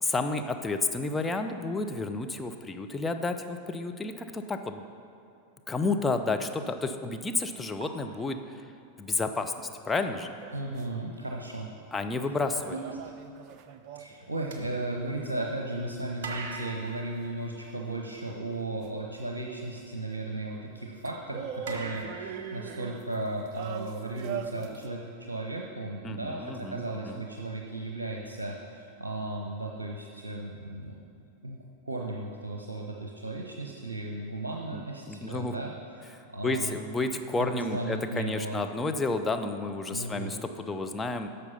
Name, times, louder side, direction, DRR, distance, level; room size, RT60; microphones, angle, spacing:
voice 1, 0.0-4.8 5.7-8.6 9.0-10.3 11.9-12.7 26.0-27.2 34.7-35.6 36.4-41.3, left 3 dB, 10° left, 5 dB, 0.6 m, -31 dB
sound 1, 7.8-9.1 10.4-10.5 10.9-11.1 14.5-15.7 16.2-18.3 21.7-23.5, right 4 dB, 55° right, 1.2 m, -43 dB
sound 2, 10.0-11.2 12.7-14.3 18.8-18.9 21.0-24.9, right 7 dB, 40° right, 0.5 m, -41 dB
voice 2, 10.5-11.7 12.7-13.0 13.9-31.0 31.4-31.6 31.9-36.8 37.4-38.6 39.9-40.3, right 2 dB, 80° right, 0 dB, 0.7 m, -35 dB
10.5 x 6.8 x 5.5 m, 2.6 s
figure-of-eight pair, 90°, 0 cm